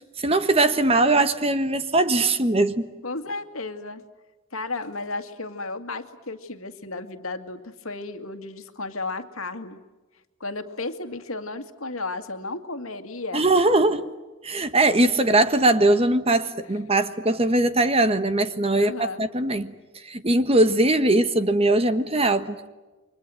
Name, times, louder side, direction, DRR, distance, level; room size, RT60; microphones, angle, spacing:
voice 1, 0.2-2.9 13.3-14.0 14.4-18.9 19.2-19.7 20.0-22.7, right 2 dB, 25° right, 1.3 m, -20 dB
voice 2, 3.0-4.0 4.5-9.8 10.4-13.6 18.8-19.3, left 3 dB, 75° left, 2.1 m, -33 dB
30.0 x 24.5 x 7.8 m
head